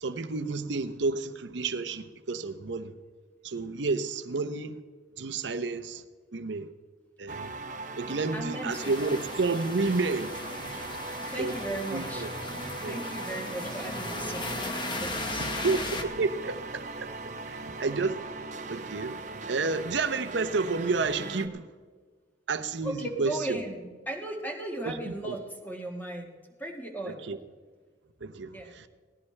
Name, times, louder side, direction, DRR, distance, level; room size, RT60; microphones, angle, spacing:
voice 1, 0.0-2.9 3.4-4.8 5.2-6.0 6.3-6.7 7.2-7.5 8.0-10.3 11.4-11.6 11.9-12.3 12.8-13.0 15.4-17.1 17.5-18.2 18.7-21.7 22.5-23.6 24.8-25.3 27.3-27.4 28.2-28.9, right 3 dB, 75° right, 0.7 m, -30 dB
sound 1, 7.3-21.5, right 3 dB, 40° right, 0.8 m, -39 dB
voice 2, 8.3-9.0 11.3-12.3 12.9-14.6 15.0-15.6 22.8-27.3 28.5-28.8, right 1 dB, 10° left, 1.6 m, -37 dB
sound 2, 8.7-16.0, left 2 dB, 25° left, 1.1 m, -37 dB
18.5 x 15.5 x 3.3 m
head